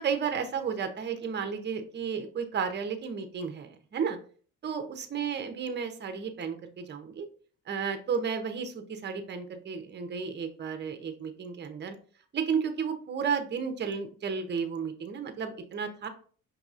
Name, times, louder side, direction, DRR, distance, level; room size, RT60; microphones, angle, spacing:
voice 1, 0.0-4.2 4.6-7.3 7.7-12.0 12.3-16.1, right 6 dB, 35° right, 7 dB, 0.7 m, -33 dB
5.3 x 2.9 x 2.4 m, 0.44 s
cardioid pair, 90°, 30 cm